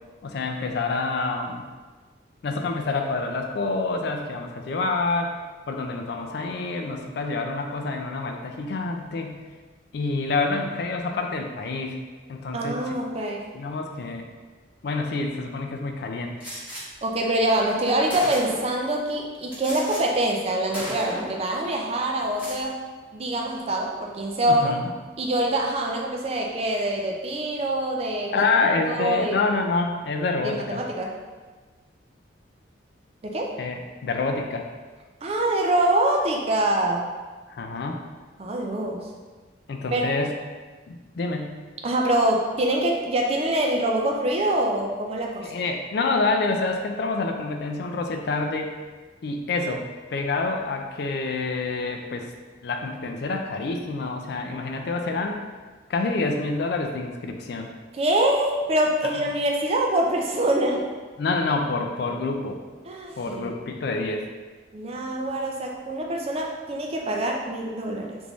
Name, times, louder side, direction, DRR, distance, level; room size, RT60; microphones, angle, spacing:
voice 1, 0.2-1.6 2.4-5.3 5.7-9.4 9.9-12.0 12.3-12.9 13.5-14.2 14.8-16.3 24.5-24.9 28.3-30.8 33.6-34.7 37.5-38.0 39.7-40.3 40.9-41.6 45.4-48.7 49.2-49.8 50.1-52.3 52.6-55.4 55.9-57.7 61.2-62.6 63.2-64.3, left 3 dB, 55° left, 3 dB, 0.3 m, -27 dB
voice 2, 12.5-13.5 17.0-22.8 23.1-24.8 25.2-28.4 28.9-29.4 30.4-31.1 33.2-33.5 35.2-37.1 38.4-39.1 39.9-40.0 41.8-45.5 57.9-60.8 62.9-63.5 64.7-68.2, right 1 dB, 30° right, 0 dB, 0.4 m, -25 dB
Gunshot gunfire, 16.4-16.8 17.6-17.7 18.1-18.8 19.5-20.0 20.3-20.5 20.7-21.4 22.2-22.6, equal, 10° right, 1.1 m, -34 dB
3.4 x 2.6 x 3.0 m, 1.4 s
head